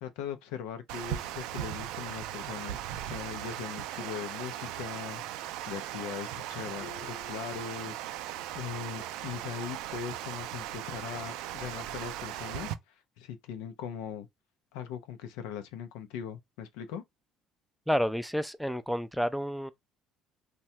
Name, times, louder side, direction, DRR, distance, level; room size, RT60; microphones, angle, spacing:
voice 1, 0.0-8.0 8.5-12.7 13.2-14.3 14.7-17.0, left 8 dB, 85° left, 0.5 m, -40 dB
Water, 0.9-12.7, right 12 dB, 80° right, 0.3 m, -38 dB
Marimba xylophone, 6.8-8.5, left 6 dB, 60° left, 0.8 m, -52 dB
voice 2, 17.9-19.7, equal, ahead, 0.4 m, -30 dB
3.2 x 2.2 x 2.7 m
supercardioid pair, 85°, 0 cm